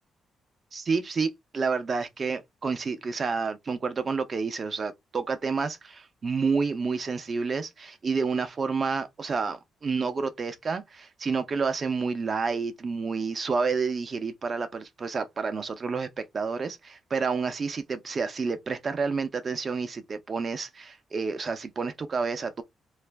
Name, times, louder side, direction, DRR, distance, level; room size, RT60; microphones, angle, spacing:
voice 1, 0.7-22.6, right 4 dB, 40° right, 0.6 m, -29 dB
2.4 x 2.1 x 3.2 m
cardioid pair, 120°, 0 cm